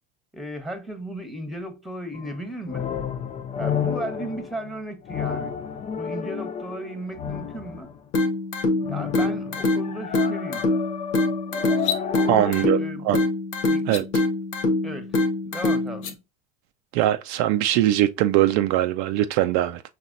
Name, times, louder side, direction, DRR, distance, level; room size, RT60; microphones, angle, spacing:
voice 1, 0.3-2.9 3.6-5.5 6.0-7.9 8.9-10.6 12.3-13.1 13.7-13.9 14.8-16.2, right 1 dB, ahead, 1.1 m, -35 dB
sound 1, 2.1-8.1 8.8-12.5, left 7 dB, 20° left, 0.3 m, -31 dB
sound 2, 8.1-16.1, left 2 dB, 80° left, 1.2 m, -25 dB
sound 3, 11.8-12.1 13.8-14.0 15.9-16.1, left 9 dB, 55° left, 1.0 m, -29 dB
voice 2, 12.3-12.8 13.0-13.2 13.9-14.0 16.9-19.8, right 13 dB, 60° right, 0.5 m, -21 dB
5.9 x 3.0 x 2.5 m
hypercardioid pair, 80°, 38 cm